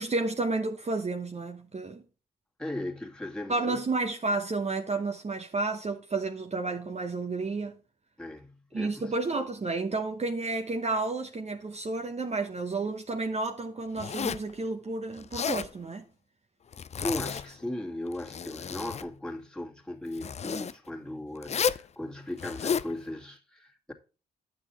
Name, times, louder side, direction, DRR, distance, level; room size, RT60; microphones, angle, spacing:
voice 1, 0.0-2.0 3.5-7.8 8.7-16.1, right 3 dB, 35° right, 0.9 m, -31 dB
voice 2, 2.6-3.8 8.2-9.1 17.0-23.9, left 1 dB, 5° left, 2.1 m, -37 dB
Zipper (clothing), 14.0-14.5 15.2-15.7 16.7-17.5 18.1-19.1 20.1-20.7 21.4-21.9 22.4-22.9, left 7 dB, 35° left, 0.4 m, -32 dB
9.6 x 6.3 x 4.3 m
hypercardioid pair, 40°, 20 cm